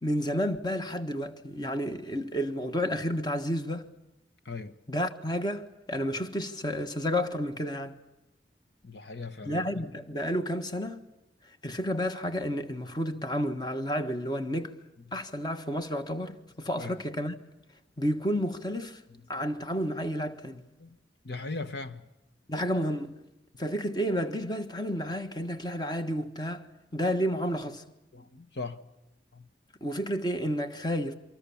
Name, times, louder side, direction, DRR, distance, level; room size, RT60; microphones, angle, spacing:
voice 1, 0.0-3.9 4.9-8.0 9.4-11.1 11.4-14.8 15.1-17.3 18.0-19.0 19.3-20.6 22.5-23.2 23.6-27.8 29.8-31.1, equal, 25° left, 1.5 m, -31 dB
voice 2, 8.8-9.8 16.8-16.9 20.8-21.0 21.2-22.0 28.1-28.8 29.3-29.5, left 3 dB, 70° left, 1.3 m, -38 dB
28.5 x 25.0 x 7.2 m
head